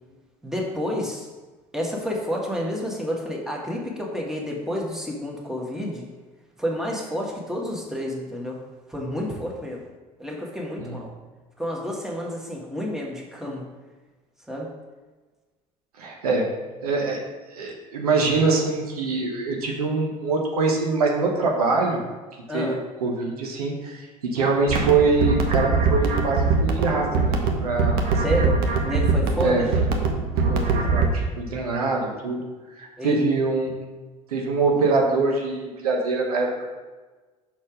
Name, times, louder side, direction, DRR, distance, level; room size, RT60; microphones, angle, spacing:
voice 1, 0.4-1.3 1.7-6.0 6.6-8.6 8.9-9.8 10.2-11.1 11.6-13.6 14.5-14.7 22.5-22.8 28.2-29.6 33.0-33.2, equal, ahead, -2 dB, 1.6 m, -29 dB
voice 2, 16.0-16.5 16.8-17.2 17.5-22.0 22.5-22.7 23.0-24.0 24.3-28.2 29.4-29.6 30.5-32.4 32.8-33.7 34.3-36.7, right 3 dB, 85° right, 0 dB, 1.0 m, -24 dB
sound 1, 24.7-31.1, right 4 dB, 60° right, 1.0 m, -22 dB
5.9 x 4.2 x 5.0 m, 1.3 s
hypercardioid pair, 70°, 19 cm